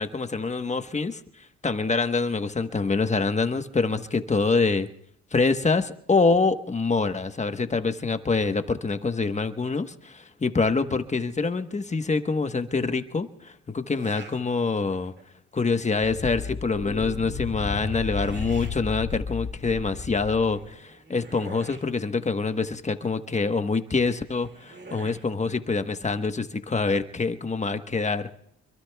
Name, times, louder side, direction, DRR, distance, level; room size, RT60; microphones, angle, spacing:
voice 1, 0.0-4.9 5.3-15.1 15.5-28.3, left 4 dB, 25° left, 9 dB, 1.2 m, -25 dB
sound 1, 13.9-14.4 14.9-15.4 17.4-18.7 20.5-21.9 23.9-25.2, right 4 dB, 35° right, 2.3 m, -46 dB
sound 2, 16.0-20.7, left 6 dB, 70° left, 3.3 m, -33 dB
26.5 x 23.0 x 2.3 m, 0.74 s
cardioid pair, 90°, 30 cm